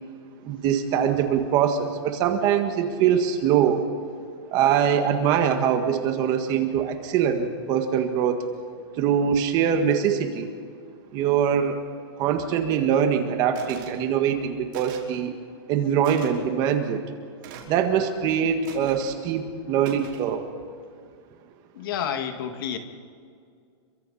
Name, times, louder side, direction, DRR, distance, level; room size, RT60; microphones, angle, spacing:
voice 1, 0.4-3.8 4.5-8.4 9.0-10.5 11.1-11.8 12.2-15.3 15.7-17.0 17.7-20.4, right 8 dB, 25° right, 6 dB, 1.7 m, -23 dB
sound 1, 13.6-14.0 14.7-15.1 16.0-16.3 17.4-17.8 18.6-19.2 19.8-20.3, right 7 dB, 45° right, 5.1 m, -43 dB
voice 2, 21.7-22.8, left 8 dB, 50° left, 6 dB, 2.2 m, -29 dB
30.0 x 24.0 x 4.3 m, 2.2 s
supercardioid pair, 170°, 15 cm